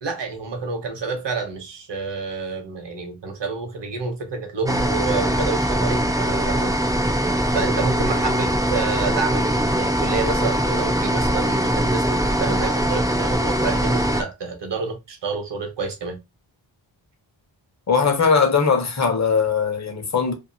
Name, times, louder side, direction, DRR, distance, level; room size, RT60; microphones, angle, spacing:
voice 1, 0.0-6.8 7.5-16.2, right 4 dB, 60° right, 1.1 m, -28 dB
sound 1, 4.7-14.2, equal, 10° right, 0.5 m, -22 dB
voice 2, 17.9-20.3, left 5 dB, 35° left, 0.9 m, -20 dB
2.7 x 2.4 x 2.7 m
cardioid pair, 65°, 48 cm